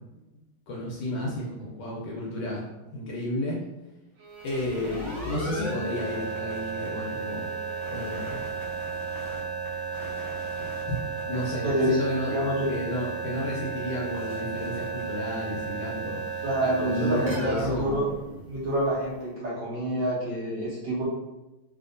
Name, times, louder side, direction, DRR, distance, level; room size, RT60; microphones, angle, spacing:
voice 1, 0.7-2.7 2.9-3.6 4.4-7.5 7.9-8.4 10.8-12.3 12.7-18.0, left 1 dB, 70° left, -4 dB, 1.1 m, -32 dB
Bowed string instrument, 4.2-8.4, right 1 dB, 90° right, 1.5 m, -45 dB
sound 1, 4.4-19.0, right 4 dB, 20° right, 0.8 m, -34 dB
voice 2, 11.6-12.0 12.3-12.7 16.4-18.0 18.5-21.0, right 1 dB, 65° right, -6 dB, 1.4 m, -27 dB
3.5 x 2.6 x 2.5 m, 1.0 s
omnidirectional pair, 2.3 m